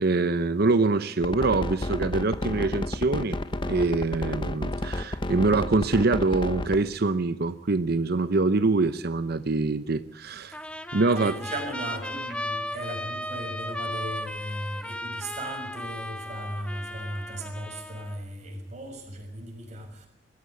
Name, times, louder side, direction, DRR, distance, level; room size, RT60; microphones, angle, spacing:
voice 1, 0.0-3.4 3.6-10.6 10.9-11.3, right 3 dB, 60° right, 0.8 m, -24 dB
sound 1, 1.2-6.8, left 1 dB, 25° left, 1.0 m, -30 dB
Trumpet, 10.5-18.2, left 1 dB, 5° left, 1.5 m, -36 dB
voice 2, 11.1-20.1, right 1 dB, 40° right, 6.0 m, -37 dB
20.5 x 15.0 x 9.5 m
head